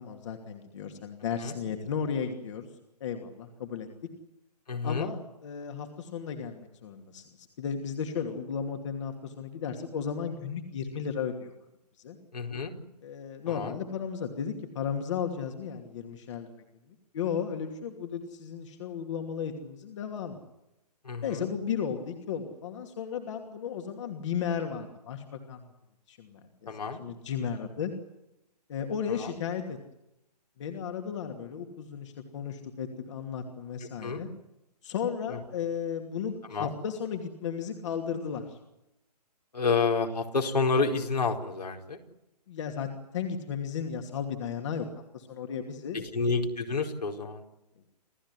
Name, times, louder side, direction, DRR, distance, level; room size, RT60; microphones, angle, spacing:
voice 1, 0.0-2.7 3.0-3.9 4.8-11.5 12.0-12.2 13.0-16.5 17.1-20.4 21.2-25.6 26.1-26.7 27.0-27.9 28.7-29.8 30.6-34.3 34.8-38.6 42.5-44.9 45.1-46.0, left 7 dB, 45° left, 4 dB, 2.7 m, -34 dB
voice 2, 4.7-5.1 12.3-12.7 13.5-13.7 21.0-21.5 26.7-27.0 29.1-29.3 34.0-34.2 36.5-36.7 39.5-42.0 45.9-47.4, left 4 dB, 75° left, 2 dB, 4.5 m, -29 dB
28.0 x 15.0 x 9.8 m, 0.89 s
figure-of-eight pair, 130°, 21 cm